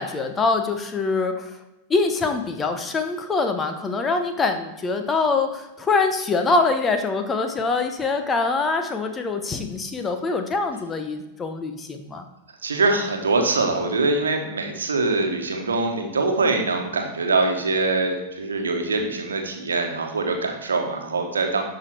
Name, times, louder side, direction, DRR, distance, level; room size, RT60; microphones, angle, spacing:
voice 1, 0.0-1.5 1.9-12.2, left 3 dB, 20° left, 6 dB, 0.9 m, -24 dB
voice 2, 12.6-21.6, right 3 dB, 70° right, 3 dB, 1.3 m, -23 dB
12.0 x 4.8 x 4.7 m, 1.0 s
figure-of-eight pair, 90°, 0 cm